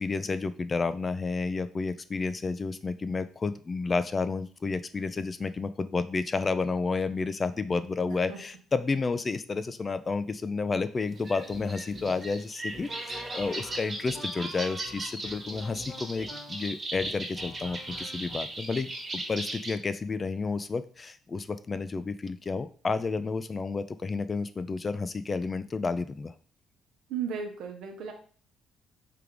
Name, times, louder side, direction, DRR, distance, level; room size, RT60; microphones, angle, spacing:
voice 1, 0.0-18.9 19.3-26.3, left 4 dB, 35° left, 13 dB, 0.3 m, -31 dB
sound 1, 11.2-19.7, right 2 dB, 40° right, 1.3 m, -37 dB
sound 2, 11.4-18.4, left 2 dB, 55° left, 1.2 m, -47 dB
voice 2, 27.1-28.1, right 7 dB, 65° right, 3 dB, 0.8 m, -34 dB
3.4 x 3.3 x 3.6 m, 0.43 s
figure-of-eight pair, 45°, 0 cm